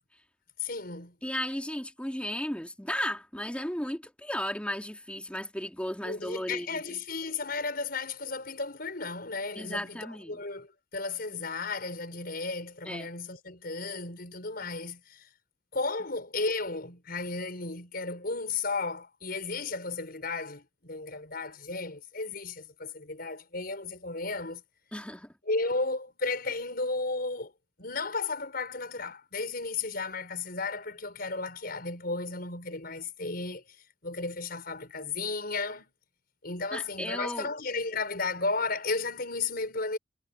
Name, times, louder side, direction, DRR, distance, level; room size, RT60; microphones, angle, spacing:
voice 1, 0.6-1.1 6.0-15.3 15.7-24.6 25.4-27.5 27.8-35.9 36.4-40.0, left 3 dB, 55° left, 5.9 m, -34 dB
voice 2, 1.2-6.8 9.6-10.4 12.8-13.1 24.9-25.3 36.7-37.5, left 1 dB, 5° left, 2.8 m, -35 dB
head